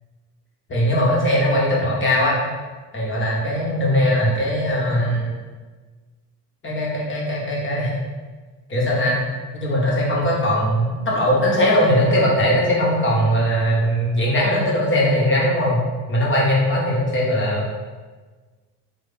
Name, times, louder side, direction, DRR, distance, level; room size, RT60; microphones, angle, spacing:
voice 1, 0.7-2.4 2.9-5.3 6.6-8.0 8.7-9.2 9.5-15.8 16.1-17.6, equal, 25° left, -4 dB, 0.8 m, -20 dB
3.2 x 2.0 x 2.6 m, 1.3 s
hypercardioid pair, 65°, 47 cm